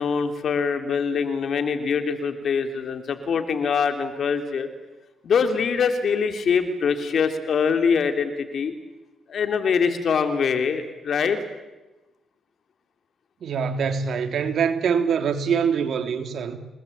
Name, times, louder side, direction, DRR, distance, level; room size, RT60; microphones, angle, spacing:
voice 1, 0.0-4.7 5.2-8.7 9.3-11.4, left 6 dB, 55° left, 3.4 m, -23 dB
voice 2, 13.4-16.6, right 6 dB, 60° right, 3.4 m, -24 dB
28.5 x 20.5 x 8.9 m
cardioid pair, 90°, 0 cm